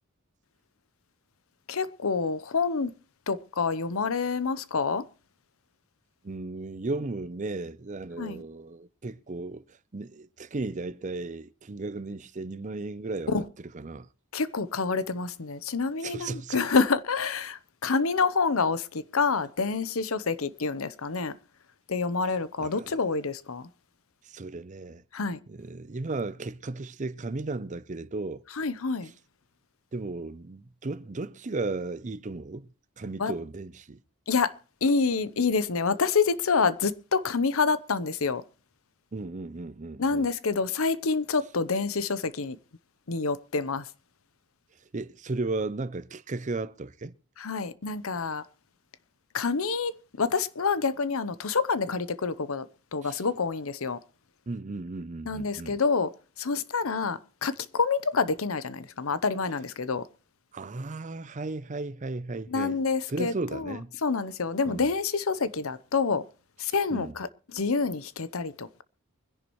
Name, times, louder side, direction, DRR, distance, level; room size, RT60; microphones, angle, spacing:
voice 1, 1.7-2.9 3.3-5.0 8.2-8.4 13.3-13.4 14.3-21.3 21.9-23.7 25.1-25.4 28.6-29.1 33.2-33.3 34.3-34.5 34.8-38.4 40.0-42.6 43.1-43.8 47.4-48.4 49.3-49.9 50.2-52.6 52.9-54.0 55.3-56.1 56.4-60.0 62.5-66.2 66.6-68.8, left 4 dB, 75° left, 0.8 m, -27 dB
voice 2, 6.2-9.6 9.9-14.1 16.0-16.6 22.6-23.0 24.3-25.0 25.5-28.4 29.0-29.1 29.9-32.7 33.0-34.0 39.1-40.3 44.9-47.1 53.0-53.2 54.5-55.8 60.5-63.9 64.7-64.9 66.7-67.1, right 3 dB, 35° right, 0.5 m, -35 dB
24.0 x 10.5 x 3.1 m
head